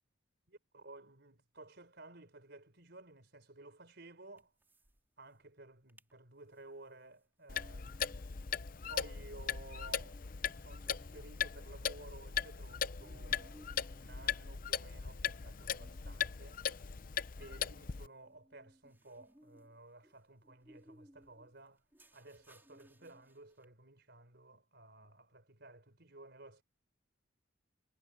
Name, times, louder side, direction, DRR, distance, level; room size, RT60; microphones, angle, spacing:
voice 1, 0.5-4.5 5.2-8.2 8.8-13.6 13.9-16.6 17.4-21.8 22.1-26.6, right 2 dB, 55° right, 4.8 m, -55 dB
sound 1, 4.4-5.0 5.3-5.4 5.7-6.1 6.5-23.6, equal, 10° right, 3.7 m, -65 dB
Clock, 7.5-18.1, left 8 dB, 45° left, 0.6 m, -39 dB
head